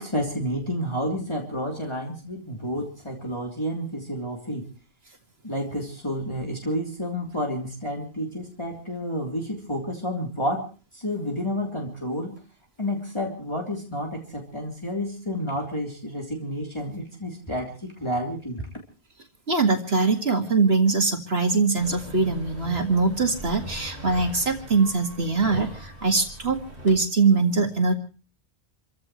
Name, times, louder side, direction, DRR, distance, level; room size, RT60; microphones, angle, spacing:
voice 1, 0.0-4.7 5.4-10.6 10.9-12.4 12.8-18.6, equal, 25° left, 0 dB, 3.3 m, -30 dB
voice 2, 19.5-27.9, right 4 dB, 70° right, 4 dB, 2.3 m, -22 dB
sound 1, 21.8-27.0, equal, 40° right, 3.6 m, -40 dB
29.0 x 15.5 x 3.1 m, 0.37 s
omnidirectional pair, 1.1 m